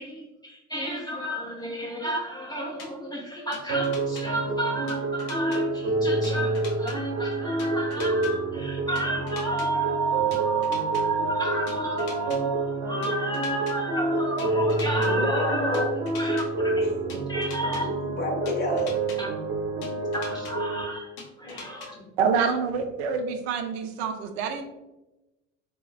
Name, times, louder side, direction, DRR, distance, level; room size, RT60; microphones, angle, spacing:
voice 1, 0.0-15.9 16.2-16.8 17.3-17.9 19.2-19.3 19.9-21.1 21.4-21.9, right 2 dB, 10° left, -3 dB, 0.4 m, -31 dB
sound 1, 2.8-2.9 3.5-4.2 4.9-5.6 6.2-7.0 7.6-8.3 9.0-9.7 10.3-11.0 11.7-12.4 13.0-13.7 14.4-15.1 15.7-16.5 17.1-17.8 18.5-19.2 19.8-20.5 21.2-21.9, left 4 dB, 60° left, 0.7 m, -42 dB
sound 2, 3.7-20.8, right 2 dB, 35° right, 0.9 m, -28 dB
voice 2, 15.0-15.9 17.0-19.0 21.4-21.7 21.9-22.1, left 2 dB, 30° left, 1 dB, 0.8 m, -30 dB
voice 3, 22.2-24.6, right 6 dB, 65° right, 6 dB, 0.5 m, -26 dB
3.8 x 2.0 x 2.3 m, 0.99 s
figure-of-eight pair, 65°, 35 cm